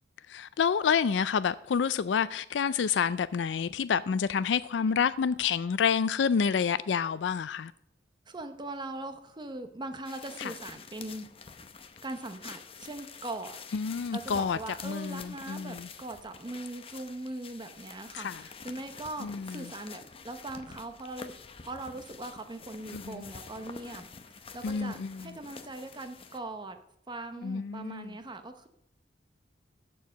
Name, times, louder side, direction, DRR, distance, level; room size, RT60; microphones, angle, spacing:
voice 1, 0.3-7.7 10.4-10.5 13.7-15.9 18.1-18.4 19.2-19.6 22.9-23.2 24.6-25.2 27.4-28.1, left 6 dB, 75° left, 0.4 m, -28 dB
voice 2, 8.3-11.3 12.0-13.6 14.1-21.3 21.6-24.1 24.3-26.8 27.1-28.7, right 2 dB, 25° right, 0.8 m, -40 dB
sound 1, 10.0-26.4, left 5 dB, 30° left, 0.7 m, -48 dB
14.0 x 4.7 x 6.3 m
head